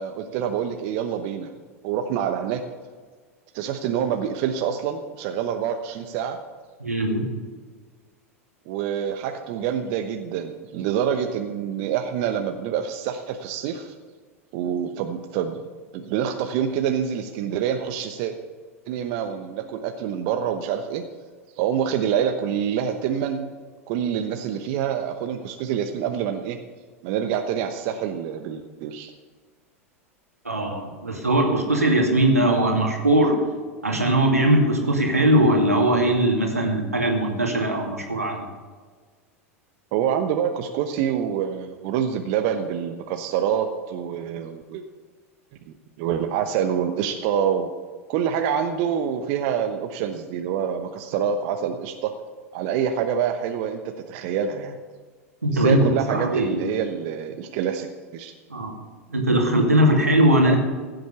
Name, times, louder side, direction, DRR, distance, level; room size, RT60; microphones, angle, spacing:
voice 1, 0.0-1.5 1.8-2.6 3.5-6.4 8.7-13.9 14.5-15.6 15.9-18.3 18.9-21.0 21.6-23.5 23.9-26.6 27.0-29.1 39.9-44.8 45.7-47.7 48.1-52.1 52.5-54.8 55.5-58.3 60.4-60.5, right 8 dB, 50° right, 6 dB, 1.0 m, -26 dB
voice 2, 6.8-7.3 30.4-33.4 33.8-38.5 55.4-55.8 56.1-56.7 58.5-58.7 59.1-60.6, right 1 dB, 90° right, 1 dB, 2.5 m, -20 dB
15.5 x 7.8 x 7.0 m, 1.5 s
figure-of-eight pair, 90°, 8 cm